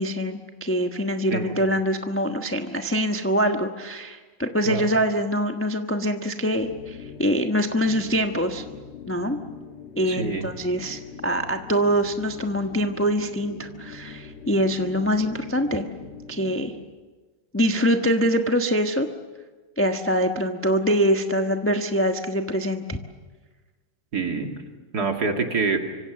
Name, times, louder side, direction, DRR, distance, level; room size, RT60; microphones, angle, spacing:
voice 1, 0.0-8.6 9.1-9.4 10.0-15.9 16.3-16.7 17.5-19.1 19.8-23.0, equal, 10° left, 4 dB, 0.7 m, -24 dB
sound 1, 6.5-16.9, left 6 dB, 75° left, 3.5 m, -42 dB
voice 2, 10.1-10.5 24.1-24.5 24.9-25.8, right 4 dB, 45° right, 3 dB, 2.8 m, -26 dB
25.5 x 25.0 x 7.0 m, 1.3 s
omnidirectional pair, 2.4 m